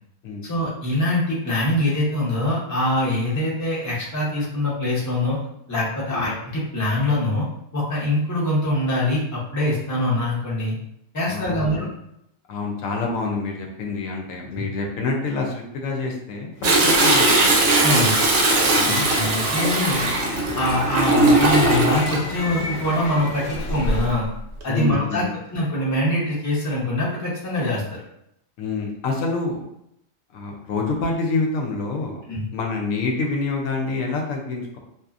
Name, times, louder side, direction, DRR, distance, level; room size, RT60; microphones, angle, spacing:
voice 1, 0.4-5.4 5.7-7.5 7.7-10.8 11.1-11.9 14.5-14.6 17.8-18.2 18.9-20.0 20.5-24.3 24.6-25.2 25.5-28.0 32.3-32.5, left 1 dB, 20° left, -6 dB, 0.5 m, -23 dB
voice 2, 11.3-11.9 12.5-17.6 18.7-19.1 19.9-20.1 24.7-25.3 28.6-29.6 30.3-32.2 32.5-34.8, left 3 dB, 85° left, 1 dB, 1.0 m, -27 dB
sound 1, 16.5-24.2, left 2 dB, 60° left, 0.8 m, -31 dB
Toilet flush, 16.6-22.2 23.7-24.1 24.6-24.7, right 2 dB, 65° right, 0.9 m, -19 dB
2.7 x 2.3 x 2.4 m, 0.78 s
omnidirectional pair, 1.3 m